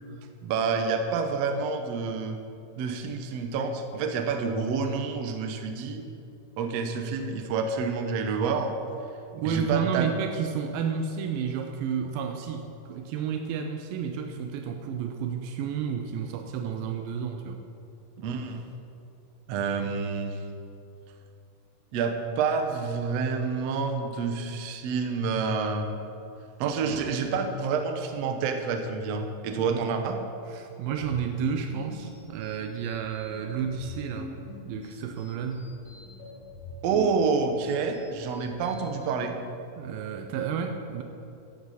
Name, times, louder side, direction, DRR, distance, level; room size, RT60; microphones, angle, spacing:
voice 1, 0.4-2.4 2.8-6.0 6.6-8.7 9.4-10.1 18.2-18.6 19.5-20.4 21.9-25.9 26.6-30.2 36.8-39.4, right 5 dB, 70° right, 5 dB, 1.7 m, -28 dB
voice 2, 9.3-17.6 29.7-29.9 30.5-34.4 34.7-35.8 39.8-41.0, right 7 dB, 90° right, 5 dB, 2.5 m, -31 dB
sound 1, 30.9-39.1, left 2 dB, 55° left, 4.1 m, -44 dB
14.0 x 11.0 x 4.2 m, 2.7 s
omnidirectional pair, 4.0 m